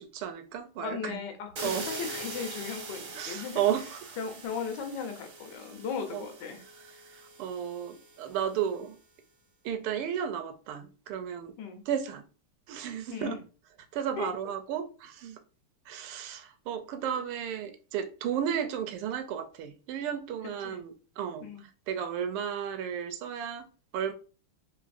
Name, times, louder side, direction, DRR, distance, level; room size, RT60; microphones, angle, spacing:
voice 1, 0.0-1.2 1.6-1.8 3.2-4.2 6.1-6.2 7.2-8.9 9.6-11.5 11.9-12.2 12.7-13.4 13.9-15.4 15.9-21.5 21.9-23.6 23.9-24.1, right 9 dB, 85° right, 1.5 m, -33 dB
voice 2, 0.8-3.6 4.2-6.6 11.6-11.8 13.1-13.4 14.2-14.3 20.6-20.8 21.4-21.6, left 6 dB, 65° left, 1.1 m, -37 dB
sound 1, 1.6-8.4, right 3 dB, 65° right, 0.8 m, -42 dB
3.9 x 2.7 x 2.5 m
omnidirectional pair, 2.4 m